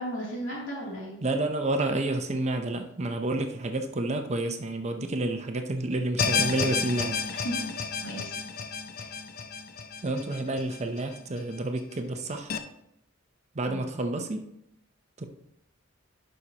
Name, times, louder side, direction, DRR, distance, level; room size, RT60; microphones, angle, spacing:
voice 1, 0.0-1.2 7.4-7.7 8.0-8.4 13.6-13.9, equal, 75° left, -4 dB, 3.0 m, -35 dB
voice 2, 1.2-7.2 10.0-12.5 13.5-14.4 15.2-15.3, right 2 dB, 35° right, 6 dB, 0.7 m, -29 dB
sound 1, 6.2-11.4 11.8-11.9 12.5-12.6, left 5 dB, 50° left, 0.5 m, -31 dB
11.0 x 5.4 x 2.9 m, 0.78 s
head